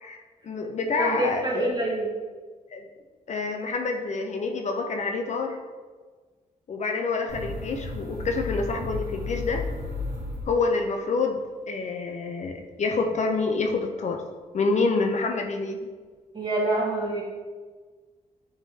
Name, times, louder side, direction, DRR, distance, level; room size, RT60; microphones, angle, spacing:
voice 1, 0.0-1.7 2.7-2.9 3.3-5.6 6.7-9.7 10.5-14.2 14.5-15.9, left 3 dB, 50° left, 3 dB, 0.6 m, -27 dB
voice 2, 1.0-2.1 16.3-17.2, right 2 dB, 30° right, -4 dB, 1.8 m, -26 dB
sound 1, 7.3-11.0, left 2 dB, 65° right, 1.6 m, -33 dB
9.1 x 3.8 x 2.8 m, 1.4 s
cardioid pair, 105°, 15 cm